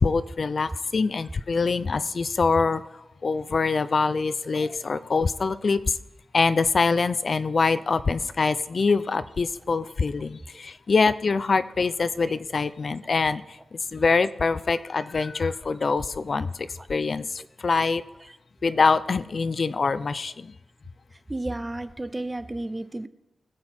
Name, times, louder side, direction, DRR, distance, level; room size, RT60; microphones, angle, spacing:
voice 1, 0.0-6.0 6.3-18.0 18.6-20.5, left 4 dB, 45° left, 14 dB, 0.4 m, -24 dB
voice 2, 21.3-23.1, right 2 dB, 15° right, 14 dB, 0.5 m, -32 dB
20.5 x 7.7 x 4.3 m, 0.94 s
wide cardioid pair, 125°, 0 cm